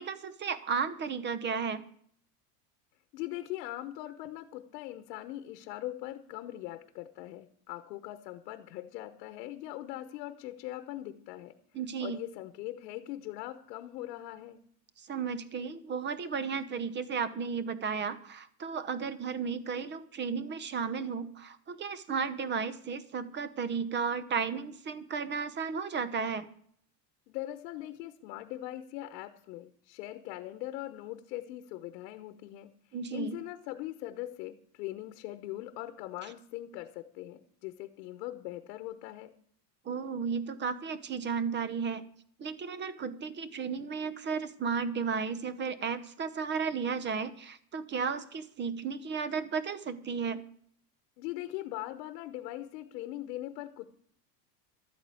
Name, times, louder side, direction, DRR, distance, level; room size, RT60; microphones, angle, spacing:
voice 1, 0.0-1.8 11.7-12.2 15.0-26.5 32.9-33.4 39.8-42.0 42.4-50.4, right 6 dB, 20° right, 15 dB, 0.9 m, -34 dB
voice 2, 3.1-11.5 12.0-14.6 27.3-32.7 33.1-39.3 51.2-54.0, left 15 dB, 75° left, 10 dB, 1.1 m, -41 dB
12.5 x 8.8 x 8.4 m, 0.63 s
supercardioid pair, 140°, 49 cm